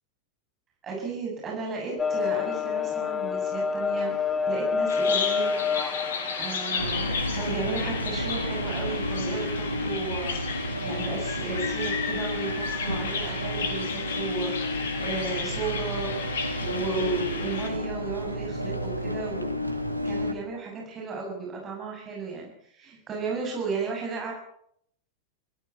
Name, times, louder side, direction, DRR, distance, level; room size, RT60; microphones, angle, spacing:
voice 1, 0.8-4.2 4.5-5.7 6.4-10.4 10.8-16.2 16.6-19.5 20.0-24.3, right 4 dB, 25° right, -1 dB, 7.7 m, -34 dB
sound 1, 2.0-8.3, left 6 dB, 15° left, 1.2 m, -28 dB
Bird vocalization bird call bird song, 4.9-17.7, left 5 dB, 60° left, 3.8 m, -33 dB
sound 2, 6.8-20.3, equal, 90° left, 2.4 m, -31 dB
26.0 x 16.5 x 7.2 m, 0.68 s
figure-of-eight pair, 90°, 0 cm